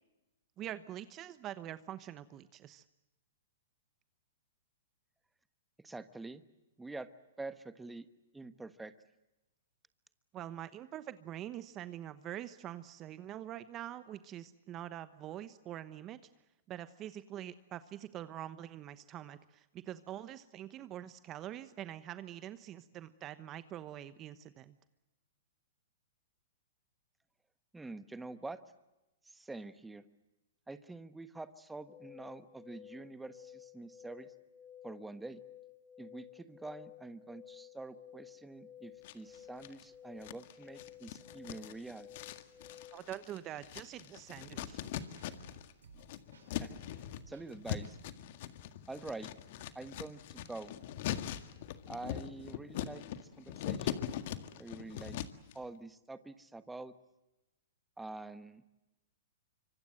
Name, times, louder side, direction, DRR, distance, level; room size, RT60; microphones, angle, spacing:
voice 1, 0.6-2.8 10.3-16.2 16.7-24.7 42.9-44.8, right 12 dB, 30° right, 13 dB, 1.0 m, -45 dB
voice 2, 5.8-6.4 6.8-7.1 7.4-8.1 8.3-8.9 27.7-28.6 29.2-30.0 30.7-34.3 34.8-35.4 36.0-42.1 46.5-48.0 48.9-49.4 49.7-50.8 51.9-54.2 54.6-55.2 55.5-56.9 58.0-58.6, right 2 dB, 5° right, 11 dB, 1.3 m, -46 dB
sound 1, 31.9-43.0, left 10 dB, 30° left, 2.1 m, -54 dB
sound 2, 39.0-39.8 40.2-45.7 46.0-55.5, left 11 dB, 55° left, 1.8 m, -41 dB
sound 3, 44.3-48.1, right 6 dB, 85° right, 6.5 m, -59 dB
25.5 x 25.0 x 7.8 m, 0.98 s
hypercardioid pair, 135°, 0 cm